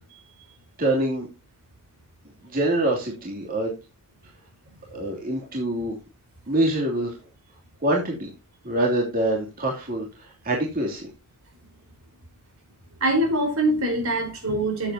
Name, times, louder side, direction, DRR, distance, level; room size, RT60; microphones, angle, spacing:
voice 1, 0.8-1.3 2.4-3.8 4.9-6.0 6.5-7.1 7.8-8.3 8.6-11.1, right 1 dB, 40° right, -1 dB, 2.8 m, -25 dB
voice 2, 13.0-14.9, right 1 dB, 70° right, 3 dB, 4.4 m, -23 dB
13.0 x 8.1 x 2.8 m, 0.27 s
head